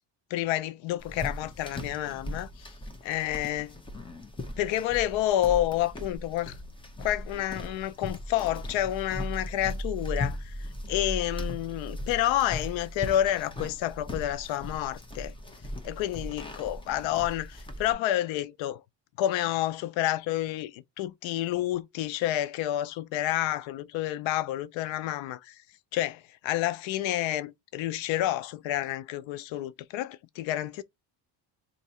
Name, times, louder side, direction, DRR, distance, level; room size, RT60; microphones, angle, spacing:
voice 1, 0.3-2.7 3.0-3.7 4.6-6.6 7.0-10.6 10.9-15.3 15.8-18.8 19.2-25.6 25.9-30.8, left 13 dB, 85° left, 0.6 m, -29 dB
sound 1, 1.0-17.9, left 1 dB, 10° left, 0.6 m, -38 dB
2.7 x 2.6 x 4.2 m
cardioid pair, 130°, 45 cm